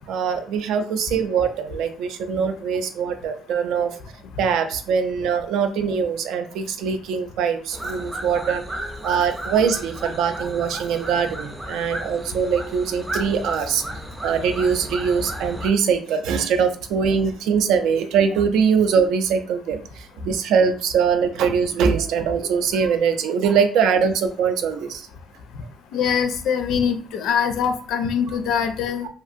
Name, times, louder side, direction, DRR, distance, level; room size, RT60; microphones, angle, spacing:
voice 1, 0.1-4.0 4.4-8.6 9.0-13.8 14.2-25.1, right 6 dB, 85° right, 8 dB, 0.4 m, -22 dB
sound 1, 7.7-15.7, equal, 10° right, 0.4 m, -33 dB
voice 2, 25.9-29.1, left 7 dB, 75° left, 8 dB, 0.4 m, -23 dB
2.8 x 2.5 x 2.5 m, 0.42 s
cardioid pair, 150°, 0 cm